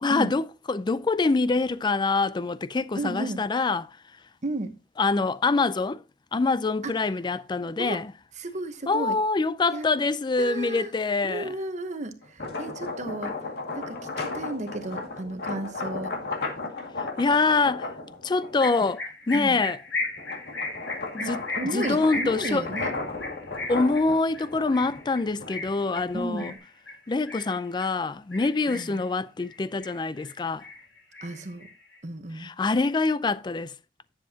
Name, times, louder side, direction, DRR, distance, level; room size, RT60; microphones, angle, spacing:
voice 1, 0.0-4.0 5.0-6.0 6.3-8.1 8.9-11.5 17.2-17.9 18.2-19.8 21.1-21.4 21.7-22.7 23.7-26.5 27.1-30.6 32.3-33.7, left 3 dB, 25° left, 0.4 m, -25 dB
voice 2, 3.0-3.4 4.4-4.8 6.8-6.9 7.8-8.0 8.4-9.2 9.7-9.9 10.4-10.9 11.2-13.4 13.7-16.1 19.3-19.6 21.2-22.9 26.1-26.6 28.7-29.0 31.2-31.7 32.0-32.5, right 2 dB, 40° right, 1.0 m, -33 dB
sound 1, 12.2-18.8 19.4-26.5, left 3 dB, 60° left, 2.1 m, -35 dB
sound 2, 18.6-27.9 28.3-29.0 29.4-30.3 30.6-31.9, left 2 dB, 85° left, 5.4 m, -36 dB
10.0 x 7.4 x 2.8 m
head